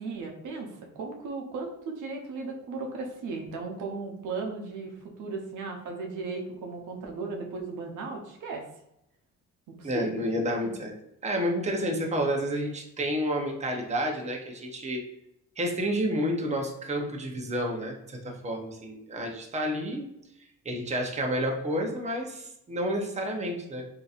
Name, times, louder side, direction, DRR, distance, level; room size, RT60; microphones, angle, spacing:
voice 1, 0.0-8.6 9.7-10.3, right 4 dB, 80° right, 2 dB, 0.8 m, -36 dB
voice 2, 9.8-10.9 11.2-15.0 15.6-20.1 20.6-23.8, equal, 25° right, 1 dB, 0.8 m, -30 dB
3.8 x 2.7 x 2.5 m, 0.81 s
cardioid pair, 90°, 30 cm